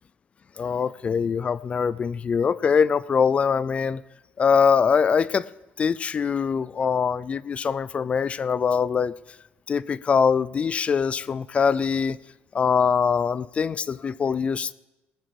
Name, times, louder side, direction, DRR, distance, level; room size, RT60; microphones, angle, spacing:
voice 1, 0.6-4.0 4.4-5.5 5.8-9.1 9.7-12.2 12.5-14.7, left 6 dB, 30° left, 0.4 m, -23 dB
19.0 x 9.0 x 5.2 m
cardioid pair, 140°, 4 cm